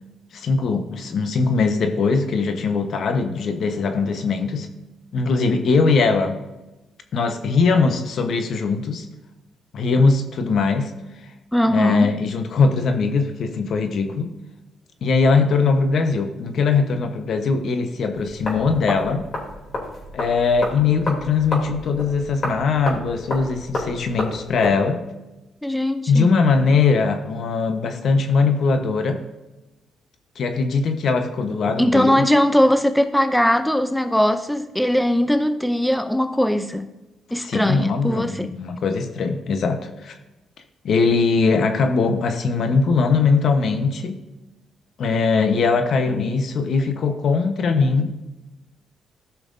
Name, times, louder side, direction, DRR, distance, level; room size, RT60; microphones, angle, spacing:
voice 1, 0.3-4.7 5.1-6.4 7.1-9.1 9.7-10.9 11.7-14.3 15.0-19.2 20.1-25.0 26.1-29.2 30.4-32.2 37.3-40.2 40.8-44.2 45.0-48.2, left 4 dB, 60° left, 1.0 m, -20 dB
voice 2, 11.5-12.2 25.6-26.3 31.8-36.9 37.3-38.5, equal, 5° left, 0.4 m, -20 dB
sound 1, 18.1-24.8, left 1 dB, 45° left, 3.0 m, -31 dB
14.5 x 5.8 x 2.7 m
cardioid pair, 90°, 0 cm